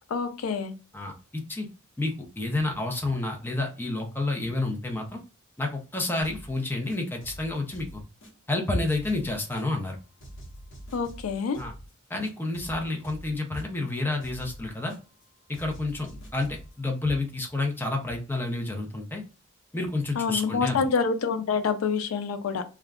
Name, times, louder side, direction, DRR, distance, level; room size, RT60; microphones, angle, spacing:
voice 1, 0.1-0.7 10.9-11.6 20.2-22.6, left 5 dB, 85° left, 9 dB, 0.4 m, -27 dB
voice 2, 0.9-1.7 2.0-5.2 5.6-8.0 8.5-10.0 11.6-11.7 12.1-14.9 15.5-19.2 19.7-20.8, left 2 dB, 10° left, 2 dB, 0.5 m, -29 dB
sound 1, 6.2-6.6 6.9-8.6 8.9-9.9 10.2-11.9 12.2-13.9 14.2-15.2 15.5-16.7, right 1 dB, 65° left, 1.0 m, -45 dB
2.3 x 2.1 x 3.4 m, 0.33 s
head